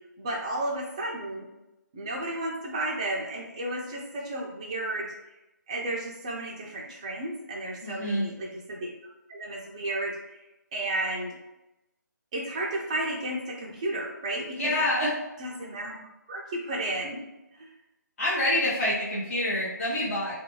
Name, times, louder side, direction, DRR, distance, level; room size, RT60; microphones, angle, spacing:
voice 1, 0.2-1.5 1.9-5.1 5.7-8.9 9.3-10.2 10.7-11.4 12.3-14.7 15.4-16.0 16.3-17.2 17.5-17.7, right 1 dB, 20° right, -2 dB, 0.4 m, -32 dB
voice 2, 7.8-8.3 14.5-15.1 18.2-20.4, left 1 dB, 45° left, -10 dB, 1.0 m, -27 dB
2.6 x 2.2 x 3.0 m, 0.95 s
figure-of-eight pair, 150°, 10 cm